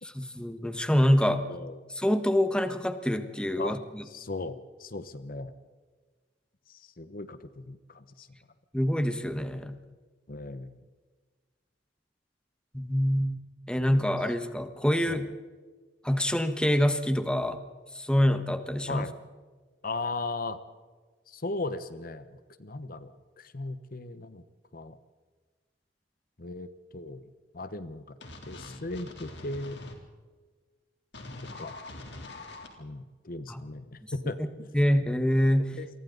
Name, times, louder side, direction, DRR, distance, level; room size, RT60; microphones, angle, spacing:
voice 1, 0.0-1.4 2.0-4.0 8.7-9.8 12.7-13.4 13.7-15.3 16.0-17.6 17.9-19.0 33.5-33.6 34.4-34.5 34.7-35.8, equal, 5° left, 8 dB, 1.3 m, -26 dB
voice 2, 1.5-1.8 3.6-3.8 4.0-5.5 6.7-8.3 10.3-10.8 13.8-14.1 15.1-15.3 18.9-19.1 19.8-20.6 21.3-23.1 23.4-24.4 24.7-25.0 26.4-27.3 27.5-28.2 28.5-29.8 31.6-31.8 32.8-34.7 35.7-35.9, left 2 dB, 55° left, 12 dB, 1.1 m, -37 dB
sound 1, 28.2-30.0 31.1-32.7, left 2 dB, 75° left, 3.4 m, -43 dB
28.5 x 23.5 x 4.0 m, 1.4 s
head